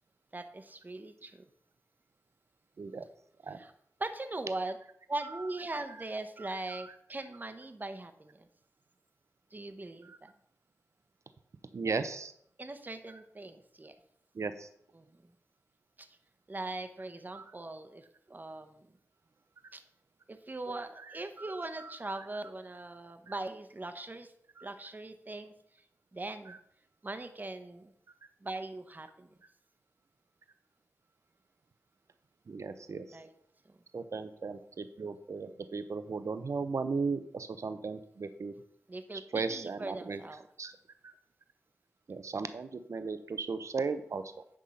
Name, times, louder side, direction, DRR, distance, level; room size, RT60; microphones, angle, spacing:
voice 1, 0.3-1.4 3.6-3.7 4.0-4.8 5.1-8.5 9.5-10.3 12.6-14.0 14.9-15.3 16.0-16.1 16.5-18.9 19.7-19.8 20.3-24.3 24.6-25.5 26.1-26.6 27.0-27.9 28.4-29.3 33.1-33.3 33.7-33.8 38.9-40.4, right 2 dB, 35° right, 8 dB, 0.9 m, -40 dB
voice 2, 6.4-6.9 10.0-10.2 11.7-12.3 14.3-14.7 17.3-17.4 21.1-22.2 24.6-24.7 26.5-26.6 32.5-33.2 33.9-38.5 39.3-40.2 40.6-40.7 41.0-41.1 42.1-44.2, right 4 dB, 65° right, 10 dB, 0.7 m, -37 dB
10.0 x 3.7 x 5.6 m, 0.68 s
cardioid pair, 60°, 5 cm